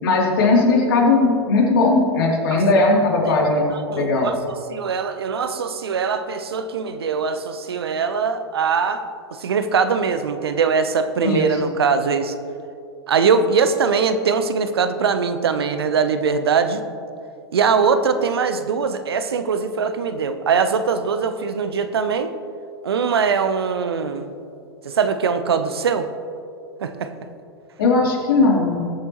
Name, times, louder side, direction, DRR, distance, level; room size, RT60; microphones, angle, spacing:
voice 1, 0.0-4.3 11.2-11.8 27.8-28.9, left 3 dB, 55° left, -1 dB, 3.0 m, -18 dB
voice 2, 3.9-4.4 4.7-9.0 9.3-12.3 13.1-16.8 17.5-22.3 22.8-24.3 24.8-26.1 26.8-27.1, right 5 dB, 65° right, 10 dB, 0.9 m, -21 dB
21.0 x 8.9 x 3.1 m, 2.5 s
figure-of-eight pair, 100°, 14 cm